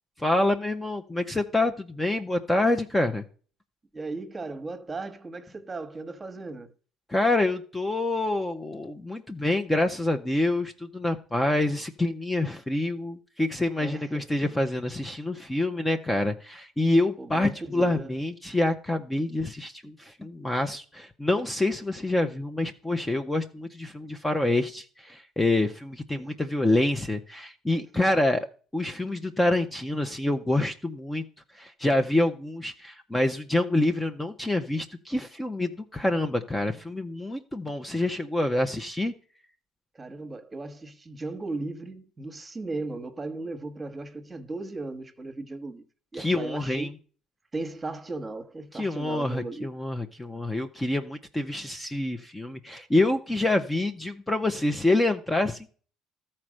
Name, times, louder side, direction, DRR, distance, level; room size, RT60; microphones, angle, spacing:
voice 1, 0.2-3.2 7.1-28.5 28.7-31.2 31.5-39.1 46.1-46.9 48.7-55.7, left 2 dB, 10° left, 0.8 m, -27 dB
voice 2, 3.9-6.7 13.8-14.3 17.2-18.1 26.1-26.3 27.9-28.1 39.9-45.8 46.1-46.9 47.5-49.7, right 3 dB, 20° right, 1.3 m, -36 dB
13.0 x 4.4 x 6.2 m
supercardioid pair, 100°, 0 cm